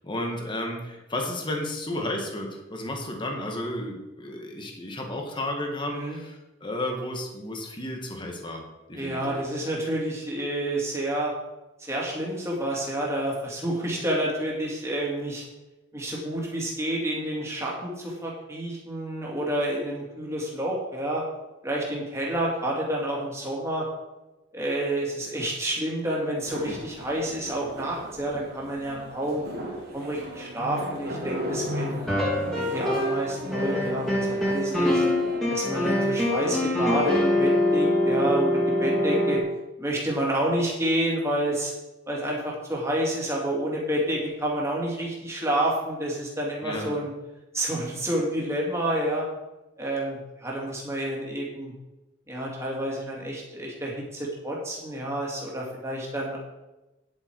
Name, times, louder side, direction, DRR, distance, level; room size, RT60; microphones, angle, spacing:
voice 1, 0.0-8.6 8.9-9.4 26.7-26.8 46.6-47.0, left 1 dB, 25° left, 2 dB, 1.7 m, -33 dB
voice 2, 5.9-6.2 8.9-11.3 11.8-15.4 15.9-21.2 21.6-23.8 24.5-29.4 29.9-32.0 32.5-35.0 35.5-38.5 38.8-39.4 39.8-41.7 42.1-47.1 47.5-49.3 49.8-51.7 52.3-56.4, right 1 dB, 15° right, -4 dB, 2.7 m, -29 dB
sound 1, 26.5-35.4, left 1 dB, 50° right, 2.5 m, -36 dB
sound 2, 32.1-33.2 33.5-39.4, left 1 dB, ahead, 2.8 m, -24 dB
10.0 x 8.5 x 4.7 m, 1.0 s
head